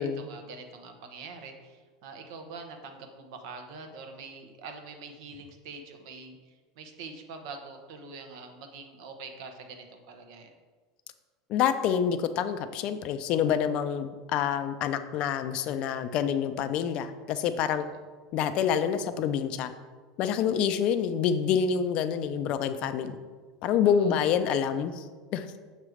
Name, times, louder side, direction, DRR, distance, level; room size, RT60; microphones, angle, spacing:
voice 1, 0.0-6.4 6.8-10.5 23.0-23.1 23.8-24.1, right 4 dB, 70° right, 5 dB, 0.9 m, -44 dB
voice 2, 11.5-17.8 18.3-19.7 20.2-23.2 23.6-25.0 25.3-25.6, left 8 dB, 50° left, 10 dB, 0.4 m, -27 dB
6.6 x 3.1 x 4.9 m, 1.4 s
supercardioid pair, 130°, 2 cm